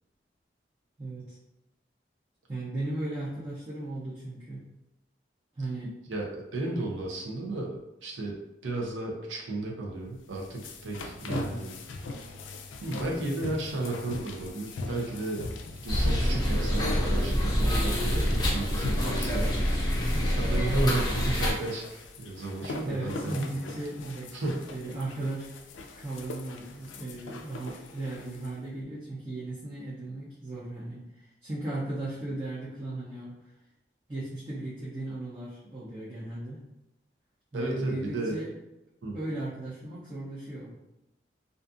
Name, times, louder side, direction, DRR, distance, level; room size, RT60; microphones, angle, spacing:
voice 1, 1.0-1.4 2.5-4.6 5.6-6.0 11.3-11.7 22.9-24.3 24.7-25.5 26.0-33.5 34.1-36.6 37.5-38.5 39.1-40.7, right 2 dB, 25° right, -9 dB, 0.5 m, -36 dB
voice 2, 6.1-8.4 8.6-11.7 12.8-15.5 15.8-19.8 20.4-23.3 24.3-24.6 37.5-38.4 39.0-39.2, right 2 dB, 85° right, -1 dB, 0.6 m, -33 dB
sound 1, 10.1-28.6, left 3 dB, 85° left, 0.3 m, -41 dB
Queens Park - Chip Shop, 15.9-21.5, equal, 20° left, 0.5 m, -26 dB
2.5 x 2.4 x 2.4 m, 0.91 s
head